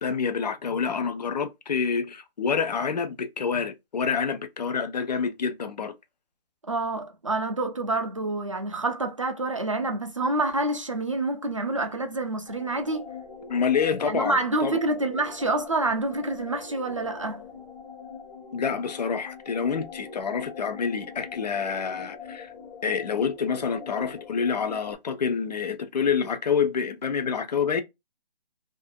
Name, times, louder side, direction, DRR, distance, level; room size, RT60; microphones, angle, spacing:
voice 1, 0.0-5.9 13.5-14.8 18.5-22.5 22.8-27.8, left 6 dB, 45° left, 0.4 m, -27 dB
voice 2, 6.7-13.1 14.0-17.4, right 2 dB, 35° right, 0.4 m, -27 dB
sound 1, 12.5-25.0, left 5 dB, 65° left, 0.9 m, -43 dB
2.4 x 2.1 x 2.5 m
hypercardioid pair, 165°, 30 cm